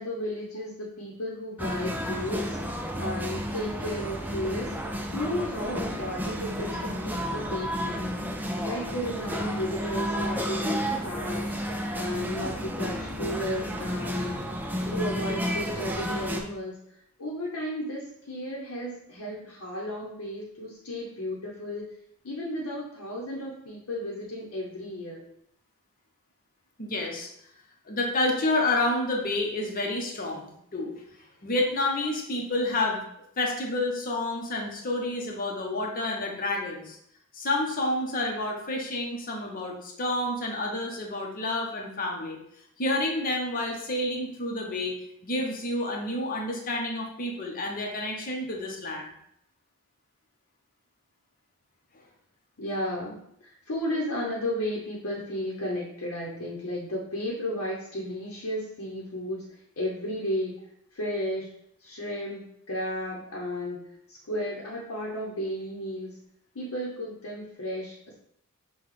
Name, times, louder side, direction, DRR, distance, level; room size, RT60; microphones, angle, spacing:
voice 1, 0.0-8.2 8.6-11.6 11.9-14.5 14.9-21.9 22.2-25.2 52.6-60.5 60.9-61.5 61.8-66.2 66.5-68.1, equal, 80° left, -4 dB, 0.8 m, -34 dB
sound 1, 1.6-16.4, equal, 10° right, 0.4 m, -31 dB
voice 2, 26.8-27.3 27.9-30.5 30.7-30.9 31.4-33.0 33.4-37.0 37.3-42.4 42.8-45.0 45.2-49.1, left 2 dB, 40° left, 0 dB, 0.8 m, -29 dB
5.8 x 2.3 x 3.2 m, 0.74 s
head